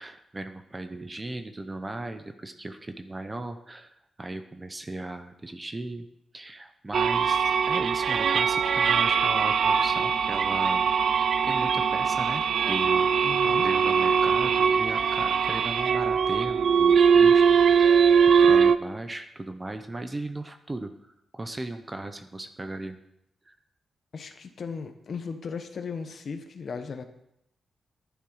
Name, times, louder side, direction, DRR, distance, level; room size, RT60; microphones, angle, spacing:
voice 1, 0.0-3.9 4.2-6.1 6.3-10.9 11.2-20.9 21.3-23.0 23.5-23.6, right 2 dB, 15° right, 9 dB, 0.7 m, -37 dB
sound 1, 6.9-18.8, right 6 dB, 60° right, 0.5 m, -21 dB
voice 2, 13.2-13.7 24.1-27.0, left 5 dB, 50° left, 7 dB, 1.2 m, -36 dB
11.0 x 10.5 x 4.8 m, 0.79 s
wide cardioid pair, 150°, 0 cm